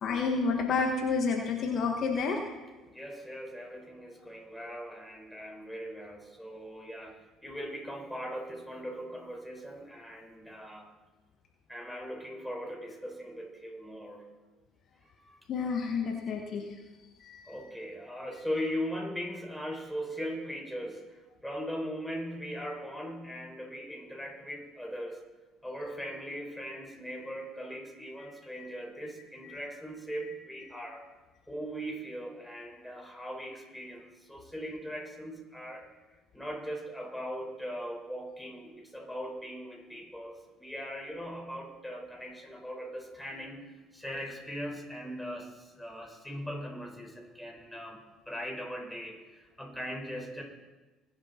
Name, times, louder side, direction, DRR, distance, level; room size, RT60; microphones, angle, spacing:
voice 1, 0.0-2.4 15.5-16.7 17.2-17.7 28.5-28.7 29.4-29.6, left 4 dB, 55° left, 3 dB, 1.4 m, -30 dB
voice 2, 2.9-10.9 11.7-14.2 15.1-15.4 17.5-25.2 25.6-31.0 31.5-35.9 36.1-50.4, equal, 5° left, 0 dB, 5.1 m, -40 dB
21.0 x 7.8 x 4.4 m, 1.2 s
hypercardioid pair, 65°, 0 cm